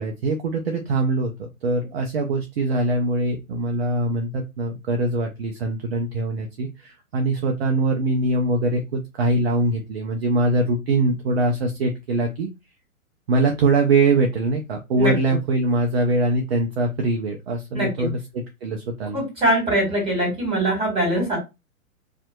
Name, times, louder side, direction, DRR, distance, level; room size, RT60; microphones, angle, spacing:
voice 1, 0.0-12.5 13.3-19.2, right 2 dB, 45° right, 2 dB, 0.5 m, -23 dB
voice 2, 17.7-18.1 19.1-21.4, right 1 dB, 15° right, -2 dB, 1.7 m, -22 dB
2.6 x 2.5 x 2.2 m, 0.24 s
figure-of-eight pair, 120°, 43 cm